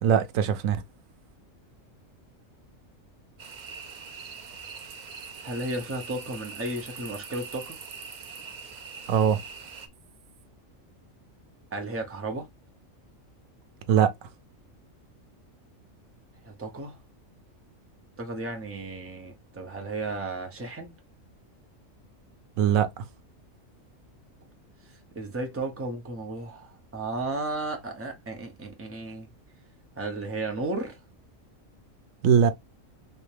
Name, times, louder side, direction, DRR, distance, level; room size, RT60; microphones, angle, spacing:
voice 1, 0.0-0.8 9.1-9.4 13.9-14.1 22.6-23.1 32.2-32.5, right 8 dB, 90° right, 1.0 m, -21 dB
sound 1, 3.4-9.9, right 5 dB, 55° right, 0.5 m, -42 dB
voice 2, 5.4-7.8 11.7-12.5 16.4-17.0 18.2-21.0 25.1-29.3 30.0-31.0, right 2 dB, 15° right, 0.7 m, -34 dB
3.3 x 2.8 x 3.2 m
omnidirectional pair, 1.4 m